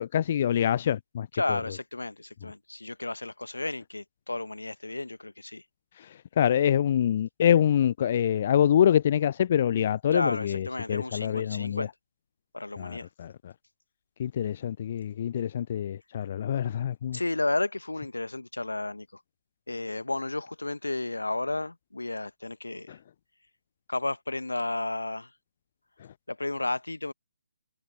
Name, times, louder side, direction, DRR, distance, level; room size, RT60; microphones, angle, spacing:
voice 1, 0.0-1.6 6.0-11.9 12.8-13.5 14.2-17.2 22.9-23.0, left 9 dB, 35° left, 0.4 m, -26 dB
voice 2, 1.3-5.6 10.1-11.9 12.5-13.1 17.1-19.2 19.7-22.9 23.9-25.3 26.3-27.1, left 2 dB, 75° left, 1.3 m, -32 dB
figure-of-eight pair, 140°, 0 cm